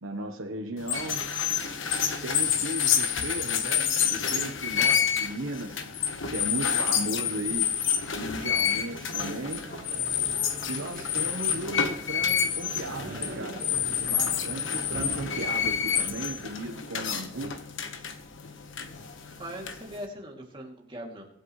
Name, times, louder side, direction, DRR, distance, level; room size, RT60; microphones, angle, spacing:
voice 1, 0.0-1.2 2.2-5.8 6.3-7.7 8.2-9.6 10.7-13.7 14.0-17.5, right 1 dB, 85° right, 3 dB, 1.1 m, -36 dB
sound 1, 0.8-20.1, left 8 dB, 70° left, 1.3 m, -28 dB
sound 2, 9.2-16.6, right 1 dB, 45° right, 1.3 m, -43 dB
voice 2, 19.4-21.2, equal, 25° right, -1 dB, 2.7 m, -40 dB
24.0 x 9.0 x 3.2 m, 0.81 s
head